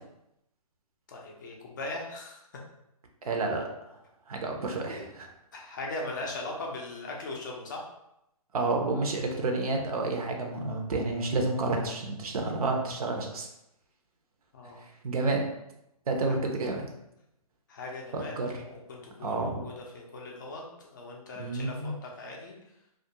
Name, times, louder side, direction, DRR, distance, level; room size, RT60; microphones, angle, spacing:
voice 1, 1.1-2.4 4.7-4.8 5.5-7.9 14.5-14.9 16.3-16.4 17.7-22.6, left 2 dB, 30° left, -1 dB, 0.4 m, -39 dB
voice 2, 3.2-3.7 4.3-5.3 8.5-13.5 15.0-15.4 16.1-16.9 18.1-18.5 19.2-19.6 21.4-22.0, right 3 dB, 70° right, 3 dB, 0.6 m, -30 dB
2.3 x 2.2 x 2.7 m, 0.83 s
hypercardioid pair, 155°, 19 cm